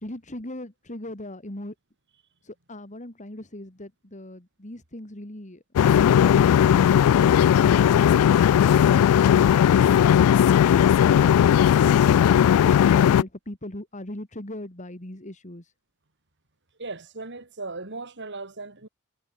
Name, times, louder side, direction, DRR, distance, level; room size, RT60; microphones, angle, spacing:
voice 1, 0.0-1.7 2.4-5.6 12.5-15.7, left 1 dB, 35° left, 2.9 m, -39 dB
sound 1, 5.8-13.2, left 9 dB, 90° left, 0.3 m, -17 dB
voice 2, 16.8-18.9, right 3 dB, 55° right, 3.7 m, -37 dB
head